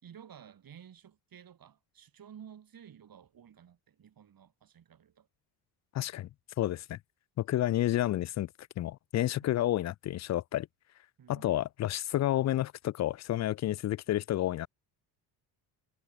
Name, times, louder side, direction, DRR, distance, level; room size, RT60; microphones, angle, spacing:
voice 1, 0.0-5.3 7.6-7.8 9.4-9.5 11.2-11.7, right 8 dB, 50° right, 6.5 m, -53 dB
voice 2, 5.9-6.3 6.6-7.0 7.4-8.5 8.8-10.7 11.3-14.7, left 13 dB, 40° left, 0.4 m, -30 dB
supercardioid pair, 85°, 45 cm